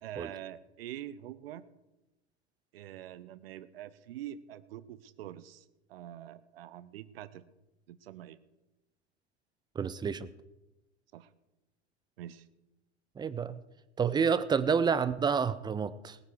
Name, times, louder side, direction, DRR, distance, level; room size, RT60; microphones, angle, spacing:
voice 1, 0.0-1.6 2.7-7.5 7.9-8.4 11.1-11.3 12.2-12.5, right 12 dB, 60° right, 17 dB, 0.9 m, -45 dB
voice 2, 9.7-10.3 13.2-13.6 14.0-16.2, right 6 dB, 15° right, 15 dB, 0.5 m, -29 dB
20.0 x 9.4 x 4.8 m, 0.99 s
figure-of-eight pair, 85°, 34 cm